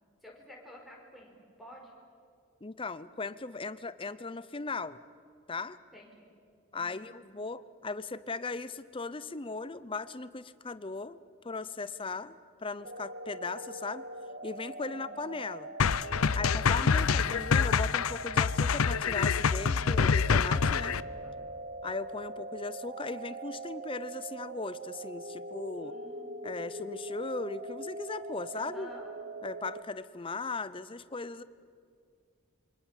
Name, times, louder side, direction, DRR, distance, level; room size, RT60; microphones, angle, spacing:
voice 1, 0.2-1.9 5.9-6.3 6.7-7.1 14.9-15.2 20.8-21.3 25.8-26.6 28.5-29.1, left 1 dB, ahead, 0 dB, 5.1 m, -52 dB
voice 2, 2.6-5.0 5.5-5.8 6.7-11.2 11.4-14.1 14.4-15.7 16.3-21.0 21.8-25.9 26.4-28.9 29.4-31.4, left 3 dB, 25° left, 15 dB, 0.7 m, -38 dB
sound 1, 12.8-29.8, right 2 dB, 45° right, 1.2 m, -42 dB
sound 2, 15.8-21.0, left 6 dB, 85° left, 0.6 m, -26 dB
27.5 x 24.5 x 7.4 m, 2.3 s
head